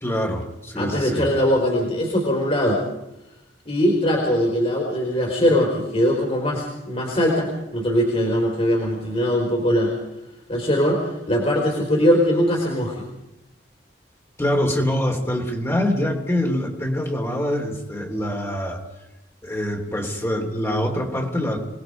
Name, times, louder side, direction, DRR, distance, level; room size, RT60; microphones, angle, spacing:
voice 1, 0.0-1.3 14.4-18.8 19.4-21.6, left 1 dB, 15° left, 1 dB, 3.2 m, -24 dB
voice 2, 0.8-2.8 3.6-9.9 10.5-13.0, equal, 35° left, 0 dB, 4.5 m, -21 dB
27.5 x 19.5 x 5.2 m, 0.93 s
head